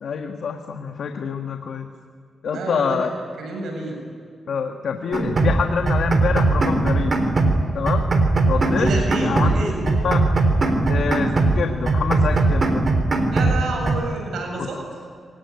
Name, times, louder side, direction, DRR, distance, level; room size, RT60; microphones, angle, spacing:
voice 1, 0.0-1.9 2.4-3.1 4.5-7.2 7.7-8.1 8.5-8.9 9.2-9.5 9.9-10.2 10.8-12.8 14.6-14.7, left 6 dB, 75° left, 4 dB, 1.6 m, -26 dB
voice 2, 2.5-3.0 3.4-4.0 8.8-9.9 13.3-14.8, right 2 dB, 85° right, 1 dB, 7.7 m, -28 dB
sound 1, 5.1-5.6 5.9-7.6 7.9-9.6 9.9-11.6 11.9-13.6 13.9-14.0, right 3 dB, 50° right, 3.8 m, -19 dB
24.0 x 19.0 x 9.8 m, 2.1 s
cardioid pair, 70°, 0 cm